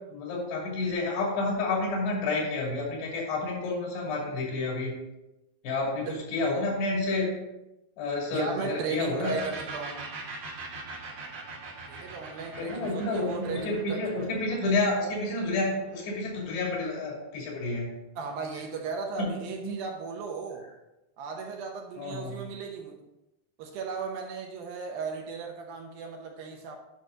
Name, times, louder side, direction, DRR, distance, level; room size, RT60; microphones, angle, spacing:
voice 1, 0.1-4.9 5.6-7.3 8.0-9.3 12.5-18.0 19.2-19.3 19.6-19.7 22.0-22.4, left 2 dB, 80° left, -2 dB, 4.8 m, -30 dB
voice 2, 8.3-10.0 11.9-14.3 18.2-20.7 21.2-23.0 23.6-26.8, right 5 dB, 75° right, 2 dB, 2.4 m, -36 dB
sound 1, 9.2-16.7, right 3 dB, 55° right, 2.2 m, -42 dB
10.5 x 6.0 x 3.9 m, 0.95 s
omnidirectional pair, 4.8 m